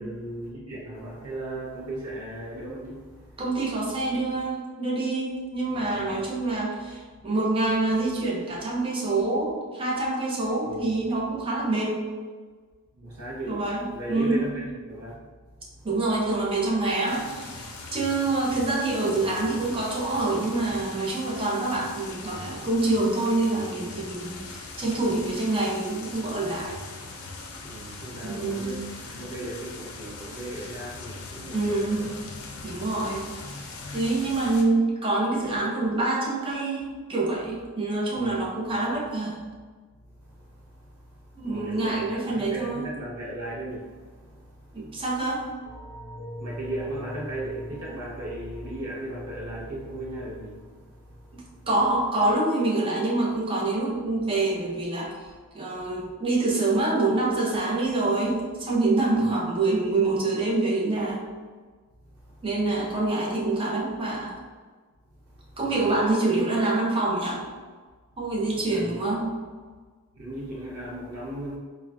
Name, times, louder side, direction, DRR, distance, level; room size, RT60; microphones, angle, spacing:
voice 1, 0.0-3.4 5.8-6.1 10.6-11.0 12.9-13.6 13.9-15.2 15.7-15.9 17.6-17.7 25.0-25.3 27.5-32.2 32.5-32.7 38.2-38.7 40.2-45.0 46.4-51.7 59.2-59.3 62.1-62.4 65.3-65.9 68.5-68.9 70.1-71.6, right 1 dB, 90° right, -5 dB, 0.6 m, -37 dB
voice 2, 3.4-12.1 13.5-14.4 15.8-26.8 28.2-28.8 31.5-32.1 32.6-33.2 33.5-39.4 41.4-42.8 44.7-45.5 51.3-55.3 55.5-61.3 62.4-64.4 65.6-67.4 68.2-69.3, right 2 dB, 25° right, -4 dB, 0.5 m, -26 dB
sound 1, 17.1-34.6, left 3 dB, 65° left, 0.4 m, -41 dB
sound 2, 45.6-51.6 51.9-52.1, equal, 60° right, 1.1 m, -43 dB
3.7 x 2.1 x 2.2 m, 1.4 s
head